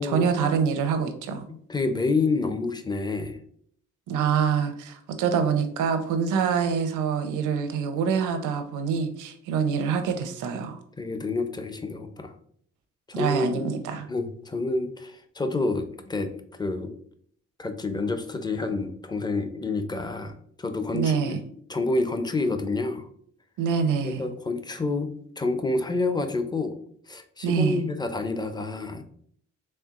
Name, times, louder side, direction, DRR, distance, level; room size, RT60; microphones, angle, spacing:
voice 1, 0.0-1.4 4.1-10.8 13.1-14.0 20.9-21.4 23.6-24.3 27.4-27.8, right 6 dB, 85° right, 0.6 m, -25 dB
voice 2, 1.5-3.4 11.0-12.3 13.1-13.6 14.1-16.9 17.6-21.4 21.7-23.1 24.0-25.1 25.4-26.8 27.1-29.0, left 3 dB, 15° left, 0.4 m, -28 dB
4.3 x 3.3 x 2.4 m
cardioid pair, 90°, 30 cm